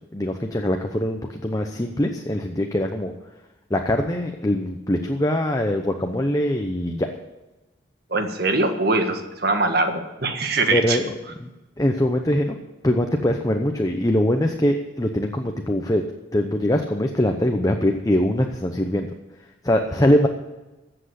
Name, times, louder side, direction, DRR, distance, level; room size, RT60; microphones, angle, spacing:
voice 1, 0.1-3.1 3.7-7.1 10.7-11.5 11.8-12.6 12.8-16.0 16.3-19.1 19.6-20.3, left 1 dB, 20° left, 3 dB, 0.8 m, -22 dB
voice 2, 8.1-11.0, right 3 dB, 50° right, 6 dB, 1.6 m, -22 dB
14.5 x 7.9 x 8.3 m, 1.0 s
head